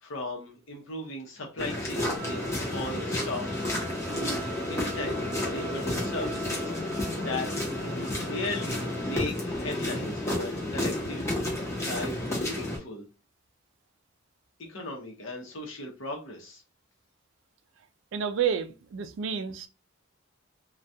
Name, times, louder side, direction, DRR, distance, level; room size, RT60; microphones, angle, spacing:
voice 1, 0.0-7.5 7.8-11.3 11.8-13.1 14.6-16.6, left 2 dB, 65° left, 0.8 m, -37 dB
sound 1, 1.6-12.8, left 1 dB, 15° left, 0.7 m, -31 dB
Trumpet, 1.9-9.3, right 1 dB, 40° right, 0.8 m, -43 dB
voice 2, 18.1-19.7, right 7 dB, 65° right, 0.3 m, -30 dB
2.3 x 2.2 x 2.6 m
head